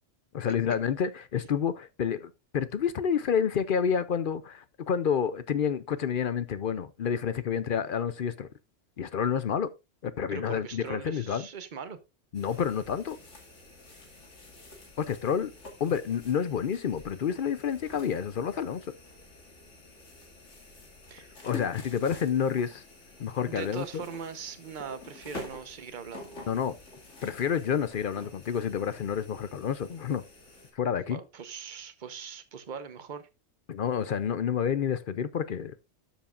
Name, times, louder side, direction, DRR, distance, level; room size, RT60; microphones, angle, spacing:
voice 1, 0.3-8.5 9.0-9.7 10.0-11.5 12.3-13.2 15.0-15.5 15.8-18.9 21.4-22.8 23.2-24.0 26.5-26.8 27.2-30.2 30.7-31.2 33.7-35.8, left 7 dB, 55° left, 0.7 m, -29 dB
voice 2, 10.3-12.0 21.1-21.5 23.5-26.4 31.1-33.3, right 6 dB, 45° right, 1.0 m, -41 dB
sound 1, 12.3-30.7, left 3 dB, 85° left, 2.5 m, -48 dB
12.5 x 7.2 x 2.4 m
omnidirectional pair, 1.2 m